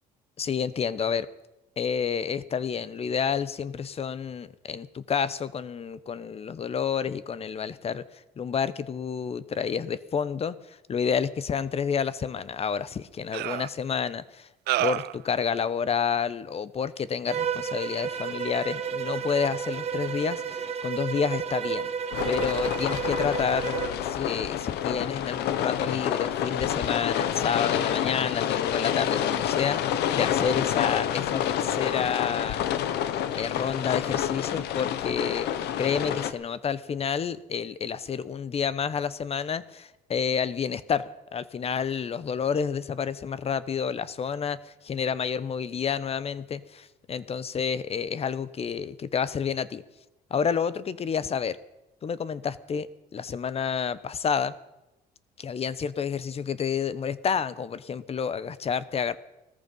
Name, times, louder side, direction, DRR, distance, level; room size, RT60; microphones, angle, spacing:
voice 1, 0.4-1.3 1.8-14.5 14.8-21.9 22.2-32.7 33.3-35.5 35.8-49.8 50.3-51.6 52.0-54.5 55.4-59.2, left 7 dB, 35° left, 17 dB, 0.9 m, -29 dB
sound 1, 12.4-12.5 13.3-13.7 14.7-15.2, right 16 dB, 75° right, 0.6 m, -28 dB
Bowed string instrument, 17.3-24.0, right 7 dB, 35° right, 1.6 m, -32 dB
sound 2, 22.1-36.3, left 10 dB, 80° left, 1.1 m, -28 dB
18.5 x 14.0 x 5.4 m, 0.97 s
cardioid pair, 110°, 17 cm